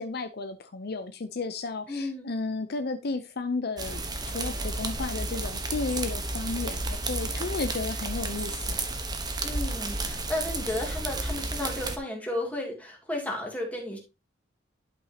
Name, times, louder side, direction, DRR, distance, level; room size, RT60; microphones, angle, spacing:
voice 1, 0.0-8.8, left 3 dB, 55° left, 0.6 m, -33 dB
voice 2, 1.9-2.3 9.4-14.0, left 1 dB, 10° left, 2.5 m, -33 dB
sound 1, 3.8-12.0, right 2 dB, 20° right, 1.0 m, -32 dB
11.5 x 5.7 x 2.8 m
head